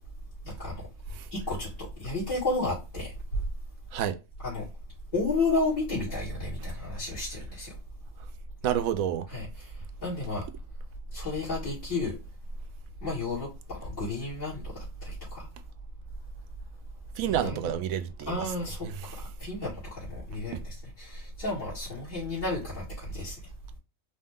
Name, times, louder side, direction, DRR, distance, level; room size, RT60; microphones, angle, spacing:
voice 1, 0.4-0.8 1.3-1.7 2.0-3.4 4.4-4.7 5.1-7.7 9.3-9.7 10.0-10.5 11.1-12.2 13.0-15.5 17.2-17.7 18.3-18.9 19.1-23.4, left 2 dB, 65° left, 2.4 m, -32 dB
voice 2, 8.6-9.3 17.2-18.5 18.8-19.1 20.5-20.6, right 10 dB, 75° right, 1.0 m, -29 dB
5.0 x 2.2 x 3.5 m
omnidirectional pair, 1.5 m